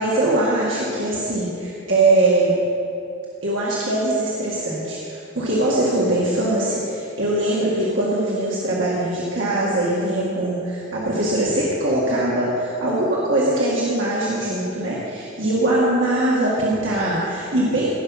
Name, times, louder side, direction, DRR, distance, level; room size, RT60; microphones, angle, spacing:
voice 1, 0.0-2.5 3.4-17.9, right 1 dB, 85° right, -6 dB, 1.7 m, -21 dB
16.5 x 6.1 x 5.6 m, 2.7 s
head